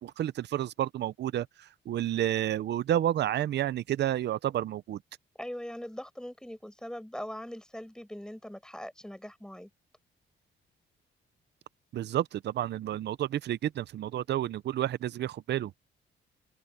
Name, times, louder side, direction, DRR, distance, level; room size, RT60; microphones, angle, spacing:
voice 1, 0.0-5.0 11.9-15.7, right 12 dB, 60° right, 0.6 m, -30 dB
voice 2, 5.4-9.7, equal, 5° left, 6.8 m, -41 dB
open air
cardioid pair, 90°, 20 cm